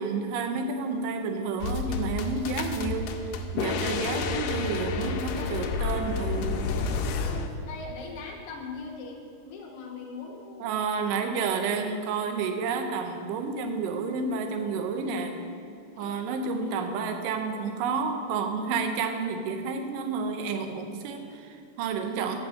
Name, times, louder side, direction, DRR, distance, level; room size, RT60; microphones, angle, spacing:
voice 1, 0.0-3.2 3.5-6.5 10.6-15.4 16.0-22.4, right 4 dB, 85° right, 6 dB, 2.4 m, -30 dB
sound 1, 1.6-7.5, left 4 dB, 85° left, 2.2 m, -30 dB
voice 2, 3.9-4.3 5.3-6.1 6.6-10.8 11.2-11.5 15.9-16.4 16.7-17.2, left 4 dB, 65° left, 0 dB, 1.6 m, -42 dB
8.4 x 6.1 x 6.4 m, 2.4 s
omnidirectional pair, 3.8 m